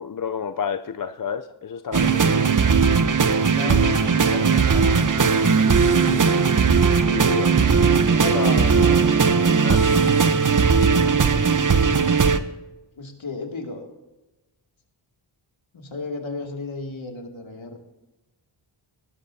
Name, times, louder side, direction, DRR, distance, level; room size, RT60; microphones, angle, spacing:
voice 1, 0.0-2.3 7.1-7.5 8.1-8.7 9.6-9.8, left 6 dB, 40° left, 9 dB, 0.6 m, -30 dB
sound 1, 1.9-12.4, right 5 dB, 40° right, 1.0 m, -18 dB
voice 2, 3.5-6.3 8.2-9.0 13.0-13.9 15.7-17.8, left 3 dB, 65° left, 2 dB, 2.6 m, -33 dB
19.5 x 12.5 x 2.8 m, 1.0 s
cardioid pair, 45°, 50 cm